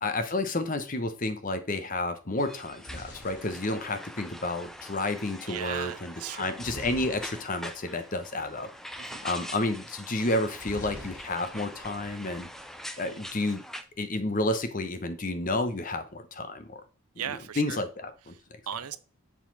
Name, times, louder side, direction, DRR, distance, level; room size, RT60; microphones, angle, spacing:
voice 1, 0.0-8.7 9.2-12.5 13.0-13.6 14.0-16.8 17.6-18.4, left 2 dB, 35° left, 0.9 m, -30 dB
sound 1, 2.4-13.8, equal, ahead, 0.5 m, -44 dB
sound 2, 2.5-4.6 6.6-7.7 8.0-8.2 8.4-8.6 10.6-11.7 12.0-12.6, left 1 dB, 90° left, 2.6 m, -45 dB
voice 2, 5.4-6.5 9.0-9.2 13.0-13.3 17.2-17.8 18.3-19.0, right 9 dB, 85° right, 0.6 m, -38 dB
7.5 x 4.1 x 5.2 m
head